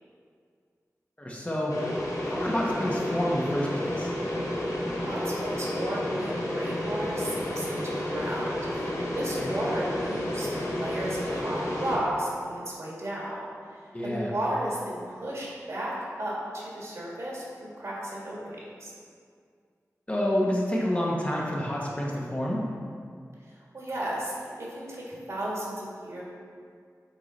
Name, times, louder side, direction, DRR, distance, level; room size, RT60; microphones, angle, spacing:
voice 1, 1.2-4.1 9.4-9.5 13.9-14.3 20.1-22.6, equal, 25° left, -3 dB, 1.1 m, -29 dB
sound 1, 1.7-12.0, left 1 dB, 75° left, 1.1 m, -31 dB
voice 2, 5.0-13.4 14.0-15.9 16.2-18.9 23.5-26.2, right 1 dB, 60° right, -5 dB, 1.7 m, -34 dB
8.1 x 3.8 x 4.1 m, 2.1 s
wide cardioid pair, 90°, 6 cm